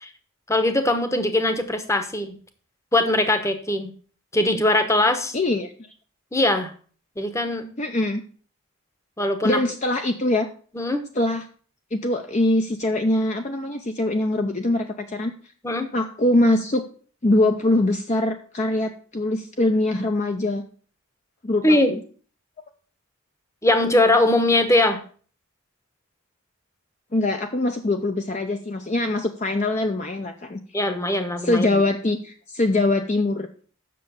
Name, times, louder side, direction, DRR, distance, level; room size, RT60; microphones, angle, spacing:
voice 1, 0.5-2.3 2.9-3.9 4.3-5.4 6.3-6.7 7.2-7.7 9.2-9.6 10.7-11.0 15.6-15.9 21.6-21.9 23.6-25.0 30.7-31.8, left 1 dB, 15° left, 8 dB, 1.0 m, -21 dB
voice 2, 5.3-5.7 7.8-8.2 9.4-10.5 11.2-11.4 11.9-15.3 15.9-16.8 17.2-20.6 21.4-22.0 27.1-30.6 31.4-33.5, left 2 dB, 35° left, 5 dB, 0.6 m, -23 dB
7.7 x 6.6 x 6.9 m, 0.43 s
head